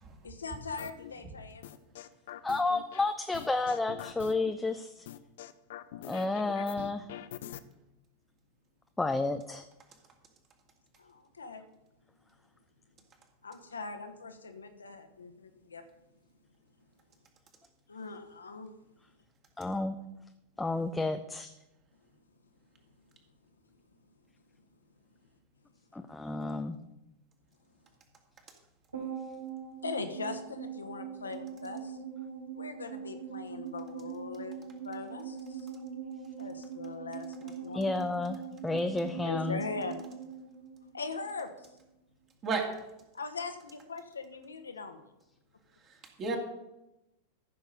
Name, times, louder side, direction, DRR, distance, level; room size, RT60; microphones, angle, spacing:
voice 1, 0.2-1.7 11.0-11.7 13.4-15.8 17.9-18.7 29.8-32.0 32.6-34.6 34.8-35.7 36.4-38.0 39.2-40.1 40.9-41.5 43.1-45.1, left 4 dB, 75° left, 6 dB, 1.2 m, -40 dB
sound 1, 0.8-1.1 1.6-3.0 3.3-4.5 5.1-7.6, left 12 dB, 55° left, 0.6 m, -44 dB
voice 2, 2.4-5.1 6.0-7.1 9.0-9.6 19.6-19.9 20.6-21.5 25.9-26.8 37.7-39.6, left 3 dB, 10° left, 7 dB, 0.6 m, -31 dB
sound 2, 28.9-41.5 41.7-41.8, right 7 dB, 80° right, 4.3 m, -42 dB
voice 3, 42.4-42.8 45.9-46.4, right 4 dB, 30° right, 3 dB, 2.4 m, -33 dB
14.0 x 6.5 x 5.4 m, 0.93 s
figure-of-eight pair, 90°, 0 cm